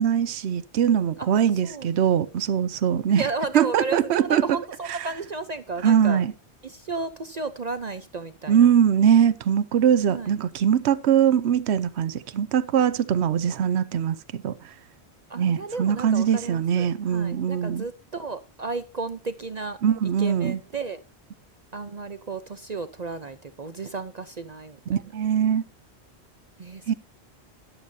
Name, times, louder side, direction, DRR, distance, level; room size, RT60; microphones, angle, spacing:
voice 1, 0.0-3.2 3.5-4.6 5.8-6.3 8.5-14.5 15.4-17.9 19.8-20.6 24.9-25.6 26.9-27.0, right 8 dB, 75° right, 1.0 m, -22 dB
voice 2, 3.1-6.2 6.6-8.7 10.1-10.3 13.6-13.7 15.3-21.0 21.7-24.8 26.6-26.8, right 3 dB, 45° right, 0.7 m, -33 dB
14.0 x 11.0 x 2.7 m
omnidirectional pair, 1.1 m